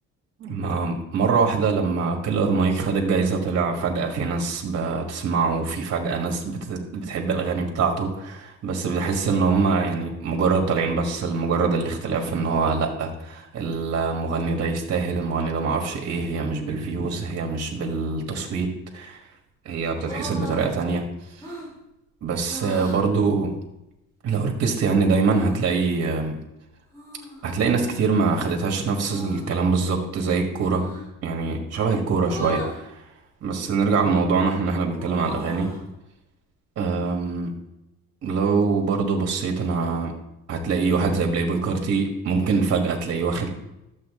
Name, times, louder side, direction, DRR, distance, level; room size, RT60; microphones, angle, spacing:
voice 1, 0.4-19.2 19.7-21.0 22.2-23.5 24.2-26.4 27.4-30.9 31.2-33.0 33.4-35.7 36.8-37.5 38.2-40.1 40.5-43.5, right 4 dB, 45° right, 2 dB, 1.6 m, -24 dB
sound 1, 20.0-20.7 21.4-21.7 22.4-23.0 25.3-25.5 26.9-27.6 28.9-29.5 30.6-31.0 32.2-32.8 33.7-34.2 34.6-35.9, equal, 10° left, 3.6 m, -37 dB
12.0 x 7.6 x 3.7 m, 0.89 s
cardioid pair, 150°, 33 cm